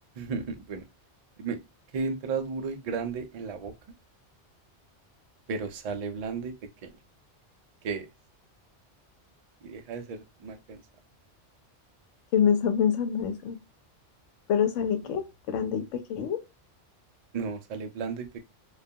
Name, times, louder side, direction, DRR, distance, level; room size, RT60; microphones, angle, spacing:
voice 1, 0.2-0.8 1.4-1.6 1.9-3.7 5.5-6.5 6.8-6.9 7.8-8.1 9.6-10.8 15.0-15.2 17.3-18.4, right 5 dB, 60° right, 0.4 m, -34 dB
voice 2, 12.3-13.6 14.5-16.4, left 7 dB, 85° left, 1.0 m, -26 dB
2.3 x 2.3 x 2.6 m
omnidirectional pair, 1.2 m